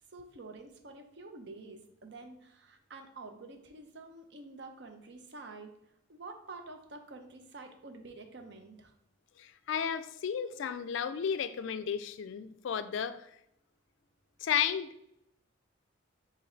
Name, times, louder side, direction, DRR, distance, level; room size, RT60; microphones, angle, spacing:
voice 1, 0.1-5.7 6.1-8.9, right 3 dB, 60° right, 0.6 m, -48 dB
voice 2, 9.4-13.3 14.4-15.1, left 8 dB, 70° left, 0.3 m, -33 dB
5.0 x 2.7 x 3.9 m
head